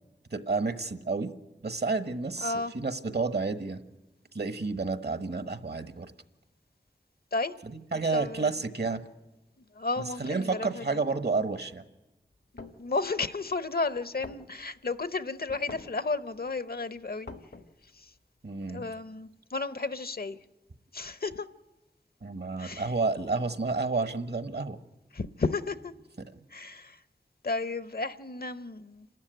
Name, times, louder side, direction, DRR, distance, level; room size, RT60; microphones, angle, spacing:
voice 1, 0.3-1.3 1.6-3.8 4.3-6.1 7.7-9.0 10.2-11.8 18.4-18.9 22.2-24.8, right 3 dB, 70° right, 1.2 m, -30 dB
voice 2, 2.4-2.7 7.3-7.5 7.9-8.5 9.7-11.0 12.8-17.3 18.0-18.1 18.7-20.4 20.9-21.5 22.6-22.9 25.1-25.9 26.5-27.0 27.4-29.1, left 3 dB, 60° left, 0.7 m, -33 dB
sound 1, 12.3-12.8 13.5-13.6 14.0-14.1 14.2-14.9 15.5-16.0 16.5-16.6 16.8-17.9, left 3 dB, 80° left, 1.3 m, -45 dB
28.0 x 13.0 x 9.1 m
wide cardioid pair, 40°, 18 cm